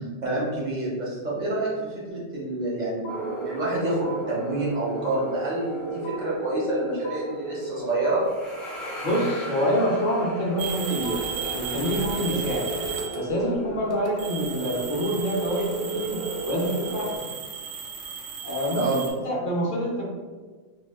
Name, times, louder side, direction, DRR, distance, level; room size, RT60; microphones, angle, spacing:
voice 1, 0.2-8.2 18.7-19.0, right 2 dB, 50° right, -5 dB, 0.5 m, -28 dB
sound 1, 3.0-3.8 4.0-4.8 5.0-5.8 6.0-6.8 7.0-7.8 8.0-8.8 9.0-9.8 10.0-10.8 11.0-11.8 12.0-12.8, right 5 dB, 75° left, 0.9 m, -41 dB
sound 2, 3.1-17.2, right 2 dB, ahead, 0.3 m, -35 dB
voice 2, 9.0-11.2 11.5-12.7 13.2-17.1 18.4-20.0, equal, 55° left, -3 dB, 0.6 m, -26 dB
sound 3, 10.6-13.4 13.9-19.1, right 6 dB, 80° right, 0.9 m, -35 dB
2.3 x 2.2 x 3.3 m, 1.4 s
omnidirectional pair, 1.3 m